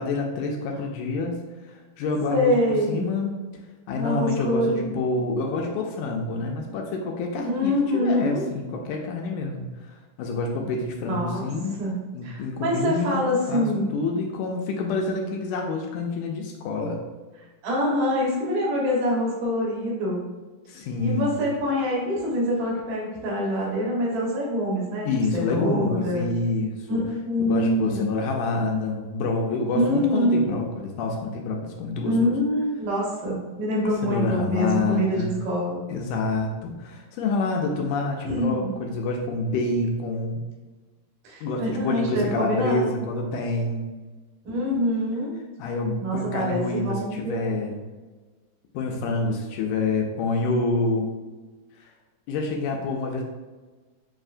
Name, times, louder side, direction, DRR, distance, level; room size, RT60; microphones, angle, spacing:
voice 1, 0.0-3.3 3.9-11.8 12.1-13.7 13.9-17.0 20.7-21.4 25.1-27.0 27.4-32.3 34.0-35.4 35.9-40.4 41.4-43.9 45.6-47.8 48.7-51.1 51.8-51.9 52.3-53.2, left 3 dB, 85° left, 1 dB, 2.0 m, -27 dB
voice 2, 2.3-3.1 3.9-5.0 7.5-8.4 11.1-11.5 11.8-12.0 12.2-13.9 17.6-20.2 21.0-25.1 25.3-26.3 26.9-28.0 29.7-30.5 32.0-35.8 38.3-38.7 41.2-42.9 44.4-45.3 46.0-47.5, equal, 85° right, -3 dB, 2.8 m, -25 dB
7.1 x 2.7 x 2.5 m, 1.3 s
omnidirectional pair, 3.6 m